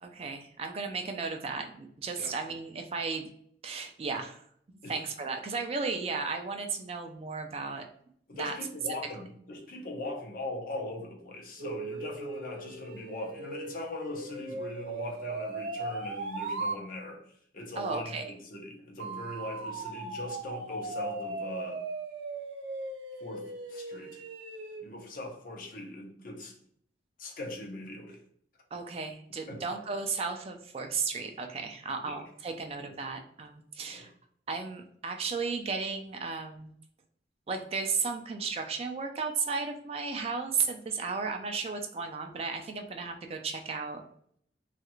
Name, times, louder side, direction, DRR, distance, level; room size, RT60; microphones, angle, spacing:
voice 1, 0.0-3.3 3.6-4.4 4.7-7.9 8.3-8.6 17.8-18.3 28.7-34.1 34.5-36.7 37.5-44.0, right 4 dB, 35° right, 5 dB, 0.3 m, -34 dB
voice 2, 8.3-17.2 17.5-21.8 23.2-24.2 24.8-26.6 27.2-28.2 29.5-29.6 32.0-32.2 32.8-32.9 33.9-34.0, left 2 dB, 50° left, 0 dB, 0.7 m, -40 dB
sound 1, 11.6-16.8 19.0-24.8, right 3 dB, 90° right, 0.5 m, -38 dB
3.1 x 2.4 x 2.9 m, 0.64 s
head